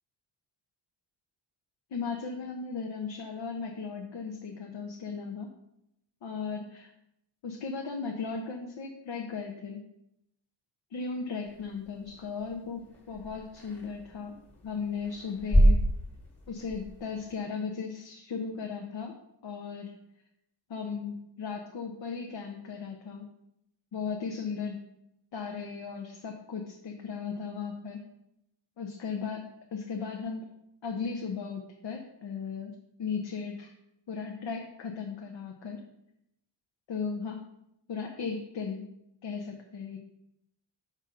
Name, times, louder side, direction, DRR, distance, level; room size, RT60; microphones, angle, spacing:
voice 1, 1.9-5.5 6.2-6.9 7.4-9.8 10.9-14.3 14.6-15.8 16.5-19.1 19.4-19.9 20.7-23.3 23.9-24.8 25.3-28.0 28.8-30.4 30.8-32.7 33.0-33.7 34.1-35.8 36.9-37.4 37.9-38.8 39.2-40.0, left 5 dB, 70° left, 2 dB, 0.8 m, -36 dB
sound 1, 11.5-17.4, equal, 25° left, 1.6 m, -29 dB
6.2 x 3.8 x 5.4 m, 0.80 s
wide cardioid pair, 155°, 45 cm